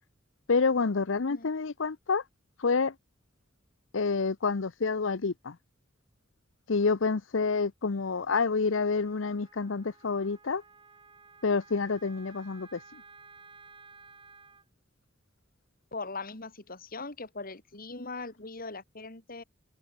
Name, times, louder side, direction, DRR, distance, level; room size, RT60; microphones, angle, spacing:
voice 1, 0.5-2.2 2.6-2.9 3.9-5.5 6.7-10.6 11.4-12.8, left 4 dB, 75° left, 0.7 m, -28 dB
Wind instrument woodwind instrument, 8.9-14.6, right 4 dB, 25° right, 4.4 m, -55 dB
voice 2, 15.9-19.4, left 3 dB, 50° left, 3.5 m, -40 dB
head